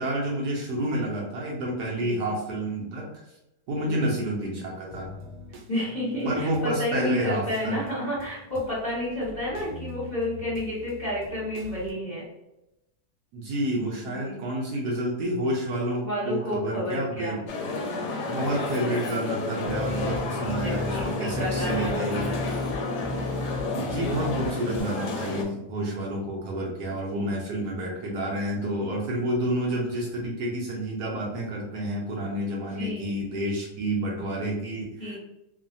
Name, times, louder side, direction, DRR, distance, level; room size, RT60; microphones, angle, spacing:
voice 1, 0.0-3.2 3.7-5.1 6.2-7.8 13.3-17.4 18.3-22.3 23.8-35.2, right 1 dB, 70° right, -3 dB, 1.0 m, -29 dB
sound 1, 4.9-11.9, left 1 dB, 85° right, 1.3 m, -45 dB
voice 2, 5.7-12.3 13.9-14.4 16.0-17.5 18.7-19.0 19.9-22.7 27.1-27.5 32.7-33.2 35.0-35.2, left 1 dB, 35° left, -9 dB, 0.7 m, -31 dB
sound 2, 17.5-25.4, left 3 dB, 75° left, 1.0 m, -31 dB
sound 3, 19.7-24.8, left 2 dB, 55° right, 0.3 m, -34 dB
3.1 x 2.1 x 2.6 m, 0.90 s
omnidirectional pair, 2.0 m